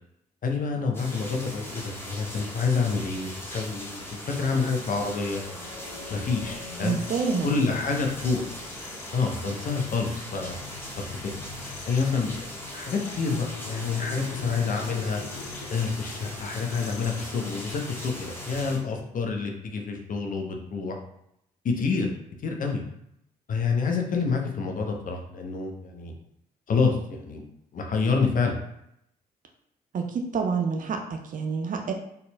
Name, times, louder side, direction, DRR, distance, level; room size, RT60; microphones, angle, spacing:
voice 1, 0.4-4.0 4.4-5.4 6.1-7.0 7.4-8.5 9.1-10.5 11.2-11.4 11.9-15.2 15.7-21.0 21.6-22.1 22.4-22.8 23.5-26.1 26.7-27.4 27.7-28.5, left 4 dB, 40° left, 3 dB, 0.8 m, -27 dB
sound 1, 0.9-18.8, equal, 10° left, 1.3 m, -40 dB
sound 2, 4.8-19.0, left 5 dB, 70° left, 0.5 m, -45 dB
voice 2, 6.8-7.5 29.9-31.9, right 5 dB, 40° right, 3 dB, 0.7 m, -28 dB
4.1 x 4.0 x 2.2 m, 0.76 s
figure-of-eight pair, 45°, 21 cm